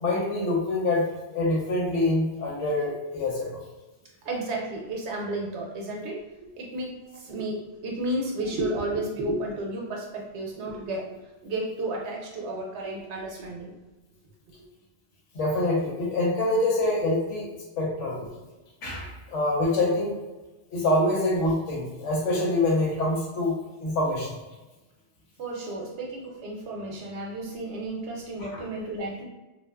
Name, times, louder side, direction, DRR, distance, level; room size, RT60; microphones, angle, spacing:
voice 1, 0.0-1.0 1.3-3.5 15.3-17.5 17.8-18.2 18.8-20.2 20.7-24.3 28.5-28.6, left 2 dB, 80° left, -3 dB, 1.2 m, -25 dB
voice 2, 4.2-11.1 11.4-13.7 18.2-18.3 25.4-29.2, right 1 dB, 70° right, -1 dB, 0.9 m, -32 dB
2.7 x 2.3 x 2.2 m, 1.1 s
omnidirectional pair, 1.2 m